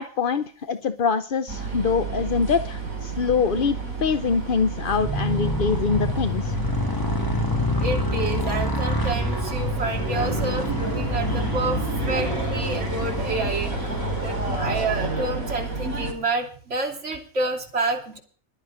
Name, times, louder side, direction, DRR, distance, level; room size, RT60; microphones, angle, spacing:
voice 1, 0.0-3.7 4.0-6.6, left 5 dB, 50° left, 11 dB, 0.7 m, -24 dB
sound 1, 1.5-16.1, right 4 dB, 70° right, 4.5 m, -30 dB
Motorcycle, 4.9-15.5, left 2 dB, 15° left, 1.5 m, -28 dB
voice 2, 7.8-14.0 14.2-18.2, right 2 dB, 55° right, 0 dB, 3.2 m, -29 dB
14.5 x 11.5 x 5.0 m, 0.43 s
omnidirectional pair, 1.5 m